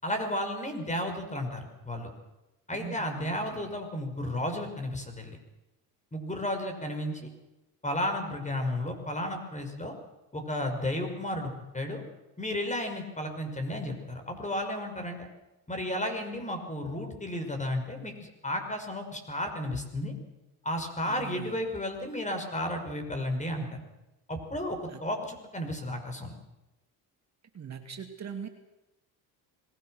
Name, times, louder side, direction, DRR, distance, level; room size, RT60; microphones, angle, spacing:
voice 1, 0.0-2.1 2.7-5.4 6.1-7.3 7.8-9.9 10.3-12.0 12.4-15.3 15.7-20.1 20.6-23.8 24.3-26.3, left 1 dB, 20° left, 5 dB, 5.7 m, -33 dB
voice 2, 2.7-3.7 21.0-21.7 24.9-25.0 27.5-28.5, right 7 dB, 40° right, 5 dB, 2.5 m, -42 dB
26.5 x 20.0 x 6.5 m, 0.98 s
cardioid pair, 90°, 40 cm